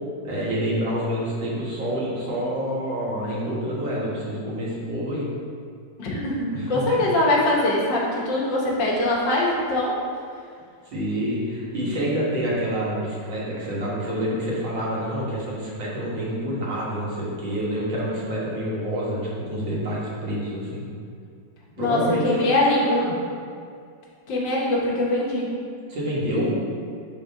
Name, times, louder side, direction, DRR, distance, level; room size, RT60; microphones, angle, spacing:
voice 1, 0.2-5.3 6.5-7.0 10.9-19.2 19.5-20.8 21.8-23.1 25.9-26.6, equal, 90° right, -6 dB, 2.1 m, -27 dB
voice 2, 6.0-10.0 21.8-23.0 24.3-25.5, left 1 dB, 75° left, -4 dB, 1.8 m, -22 dB
5.0 x 3.7 x 5.5 m, 2.3 s
omnidirectional pair, 2.0 m